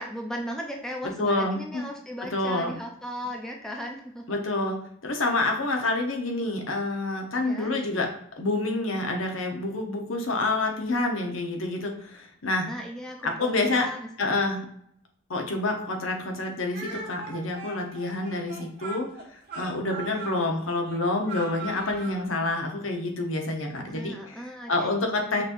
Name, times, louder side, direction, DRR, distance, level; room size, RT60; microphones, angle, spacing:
voice 1, 0.0-4.4 7.4-7.7 12.7-14.5 23.8-25.0 25.3-25.4, equal, 5° left, 1 dB, 0.5 m, -37 dB
voice 2, 1.2-1.8 2.3-2.7 4.3-8.1 8.4-12.7 13.2-13.9 14.2-14.6 15.3-19.1 19.6-24.4 24.7-25.4, left 2 dB, 75° left, 3 dB, 1.0 m, -28 dB
Speech, 16.7-22.2, right 3 dB, 45° right, 1.5 m, -39 dB
5.8 x 3.1 x 2.6 m, 0.69 s
head